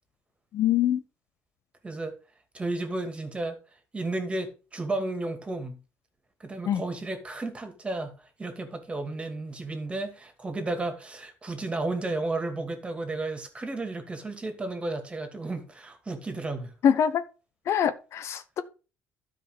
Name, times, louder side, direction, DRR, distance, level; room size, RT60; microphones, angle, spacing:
voice 1, 0.5-1.0 6.7-6.8 16.8-17.2 17.7-18.6, left 9 dB, 60° left, 0.8 m, -24 dB
voice 2, 2.5-3.6 3.9-5.8 6.4-16.7, right 2 dB, 20° right, 2.4 m, -33 dB
12.0 x 5.1 x 5.0 m
cardioid pair, 100°, 5 cm